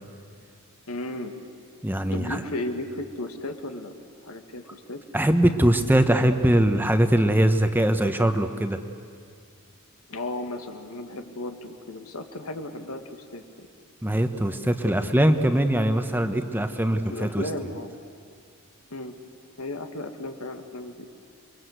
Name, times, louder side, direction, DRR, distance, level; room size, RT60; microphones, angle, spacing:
voice 1, 0.9-1.3 2.1-3.9 4.2-5.0 10.1-13.7 17.1-17.9 18.9-19.1 19.6-21.1, left 1 dB, 90° left, 5 dB, 2.1 m, -35 dB
voice 2, 1.8-2.4 5.1-8.8 14.0-17.4, right 1 dB, 10° right, 7 dB, 1.0 m, -22 dB
28.5 x 23.0 x 8.1 m, 2.1 s
head